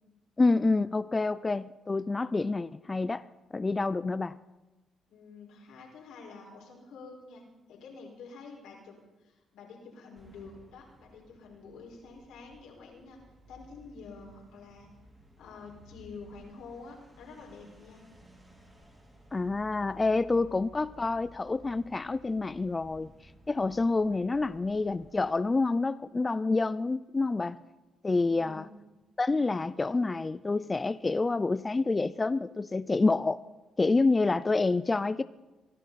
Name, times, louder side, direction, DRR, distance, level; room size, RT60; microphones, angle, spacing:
voice 1, 0.4-4.4 19.3-23.1 23.5-27.6 28.0-28.7 29.2-33.4 33.8-35.2, left 3 dB, 25° left, 0.4 m, -28 dB
voice 2, 5.1-7.4 7.7-13.2 13.5-14.9 15.4-18.0 28.3-28.8, left 4 dB, 85° left, 5.0 m, -48 dB
sound 1, 10.2-25.7, equal, 15° right, 4.5 m, -56 dB
24.0 x 12.0 x 4.1 m
cardioid pair, 90°, 0 cm